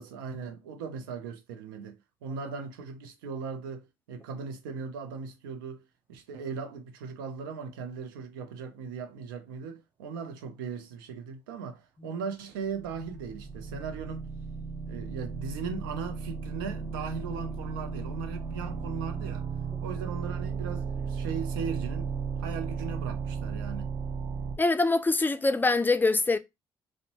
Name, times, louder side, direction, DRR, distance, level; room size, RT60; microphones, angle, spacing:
voice 1, 0.0-5.8 6.1-14.3 14.9-19.5 19.8-22.1 22.4-23.9, right 6 dB, 85° right, 0.5 m, -38 dB
sound 1, 12.7-24.6, right 5 dB, 50° right, 0.7 m, -35 dB
voice 2, 24.6-26.4, left 3 dB, 15° left, 0.4 m, -24 dB
2.6 x 2.1 x 2.9 m
hypercardioid pair, 55°, 11 cm